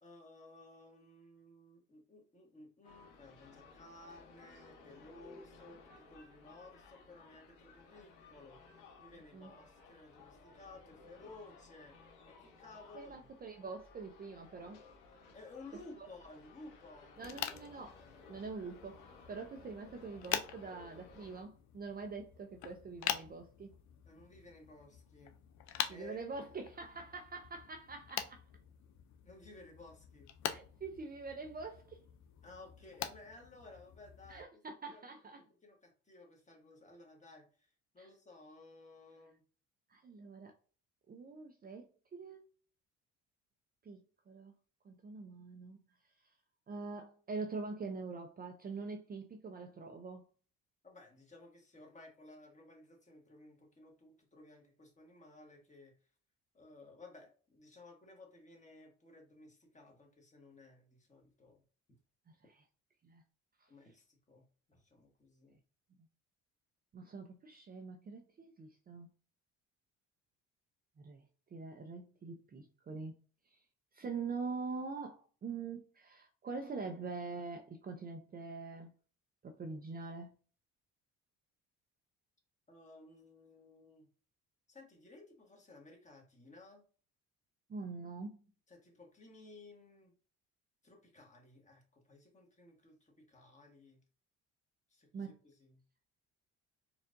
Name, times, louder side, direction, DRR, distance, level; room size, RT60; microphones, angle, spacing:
voice 1, 0.0-5.8 6.1-8.6 9.0-12.0 12.3-13.3 15.3-17.2 24.0-25.3 25.9-26.2 29.2-30.3 32.4-34.6 34.9-35.1 35.3-37.7 37.9-39.4 50.8-55.9 56.5-61.6 63.7-64.4 64.7-65.6 82.7-84.1 84.7-86.8 88.7-90.1 90.8-94.0 94.9-95.8, left 2 dB, 25° left, 1.3 m, -56 dB
sound 1, 2.8-21.4, left 4 dB, 80° left, 1.0 m, -58 dB
voice 2, 12.9-14.8 16.0-16.1 17.2-23.7 25.9-28.4 30.5-32.0 34.3-35.4 38.0-38.1 39.9-40.5 41.1-42.4 43.8-44.0 44.3-44.5 44.8-45.8 46.7-50.2 62.5-62.6 63.0-63.2 66.9-69.1 71.0-71.2 71.5-73.2 73.9-78.9 79.4-80.3 87.7-88.4 95.1-95.4, right 4 dB, 30° right, 0.5 m, -44 dB
sound 2, 17.2-34.4, left 10 dB, 65° left, 0.5 m, -45 dB
4.4 x 2.5 x 2.5 m
cardioid pair, 90°, 31 cm